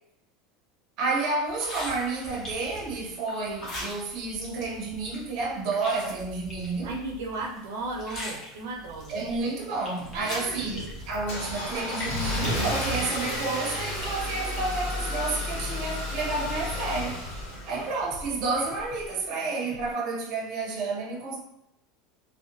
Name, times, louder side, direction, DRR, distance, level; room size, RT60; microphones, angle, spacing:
voice 1, 1.0-6.9 9.1-17.3 17.7-21.4, right 3 dB, 40° right, 0.6 m, -30 dB
sound 1, 1.5-19.3, left 1 dB, 25° left, 0.7 m, -43 dB
voice 2, 6.8-9.2 10.1-10.9, right 2 dB, 85° right, 0.5 m, -35 dB
sound 2, 9.2-19.9, equal, 10° left, 1.3 m, -49 dB
Car / Engine starting, 10.1-18.2, left 1 dB, 65° left, 1.0 m, -32 dB
2.7 x 2.1 x 2.6 m
supercardioid pair, 175°, 0 cm